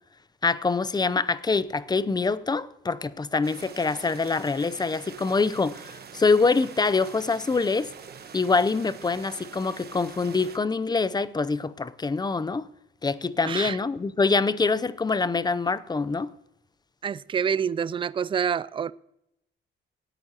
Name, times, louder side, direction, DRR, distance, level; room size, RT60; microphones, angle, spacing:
voice 1, 0.4-7.9 8.3-12.7 13.0-16.3, left 4 dB, 20° left, 0.6 m, -25 dB
sound 1, 3.4-10.6, right 7 dB, 55° right, 1.2 m, -45 dB
voice 2, 13.4-13.8 17.0-18.9, right 7 dB, 25° right, 0.3 m, -27 dB
18.5 x 9.1 x 2.9 m
cardioid pair, 90°, 20 cm